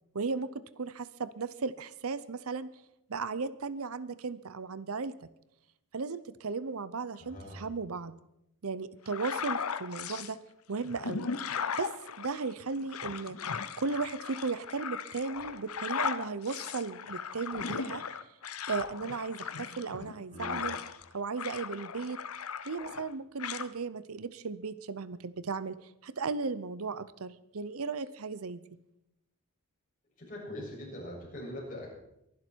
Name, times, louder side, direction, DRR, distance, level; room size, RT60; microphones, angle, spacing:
voice 1, 0.1-2.7 3.1-5.3 5.9-8.2 8.6-10.4 10.7-11.3 11.8-13.4 13.8-18.0 18.7-20.8 21.1-22.2 22.6-28.6, right 4 dB, 75° right, 16 dB, 0.7 m, -36 dB
voice 2, 7.2-7.6 20.3-20.7 30.2-31.9, left 1 dB, 35° left, -3 dB, 7.2 m, -42 dB
sound 1, 9.1-10.3 10.8-21.1 21.4-23.1 23.4-23.7, left 6 dB, 75° left, 0.8 m, -37 dB
23.5 x 11.5 x 4.6 m, 0.82 s
head